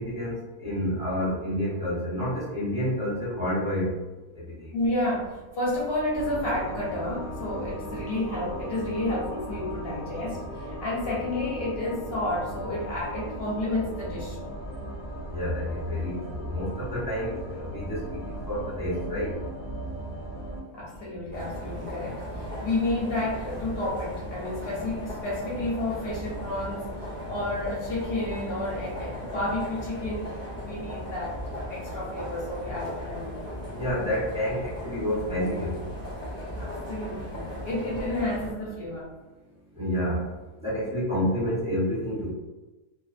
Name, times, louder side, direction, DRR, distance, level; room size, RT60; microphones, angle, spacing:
voice 1, 0.0-3.8 15.3-18.2 18.5-19.3 33.7-35.7 39.8-40.2 40.6-42.3, equal, 5° right, -10 dB, 0.5 m, -29 dB
voice 2, 4.7-14.4 20.7-30.3 30.6-33.4 36.6-39.1, left 1 dB, 50° left, -5 dB, 0.8 m, -31 dB
sound 1, 6.1-20.6, right 1 dB, 85° left, 0.3 m, -37 dB
sound 2, 21.3-38.5, equal, 55° right, 0.4 m, -37 dB
2.6 x 2.0 x 2.4 m, 1.1 s
omnidirectional pair, 1.5 m